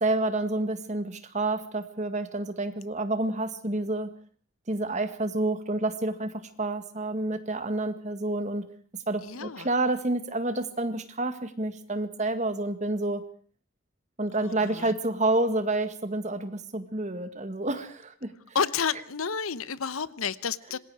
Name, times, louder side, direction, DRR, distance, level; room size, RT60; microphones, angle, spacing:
voice 1, 0.0-4.1 4.7-8.6 9.1-13.2 14.2-18.3, right 2 dB, 35° right, 10 dB, 1.8 m, -29 dB
voice 2, 9.2-9.7 14.4-14.9 18.5-20.8, left 6 dB, 85° left, 17 dB, 0.9 m, -30 dB
26.5 x 20.5 x 4.9 m, 0.43 s
head